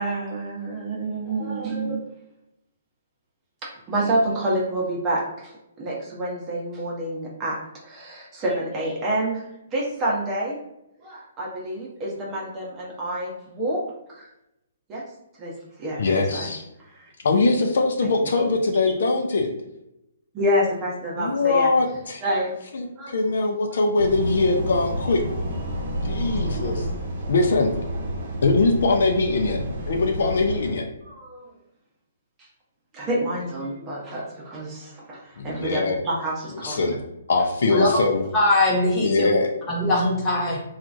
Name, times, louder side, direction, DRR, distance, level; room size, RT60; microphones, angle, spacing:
voice 1, 0.0-2.0 3.6-5.5 5.8-7.6 7.8-9.4 9.7-10.6 11.0-13.8 14.1-14.3 14.9-15.0 15.4-15.5 15.8-16.5 16.9-17.0 18.0-18.1 20.3-21.7 22.2-22.6 23.0-23.2 26.4-26.9 31.1-31.5 32.9-36.8 37.7-37.8, right 1 dB, 25° right, -4 dB, 0.8 m, -28 dB
voice 2, 16.0-16.6 17.2-19.5 21.2-22.2 22.7-25.2 26.0-26.9 27.3-27.7 28.4-29.6 29.9-30.8 35.4-36.0 36.6-37.0 37.3-38.2 39.0-39.5, left 3 dB, 70° left, 3 dB, 0.4 m, -22 dB
sound 1, 24.0-30.7, right 1 dB, 55° right, 0.7 m, -30 dB
voice 3, 38.3-39.3 39.7-40.6, left 1 dB, 20° left, -5 dB, 1.0 m, -21 dB
3.0 x 2.4 x 2.5 m, 0.86 s
hypercardioid pair, 140°, 0 cm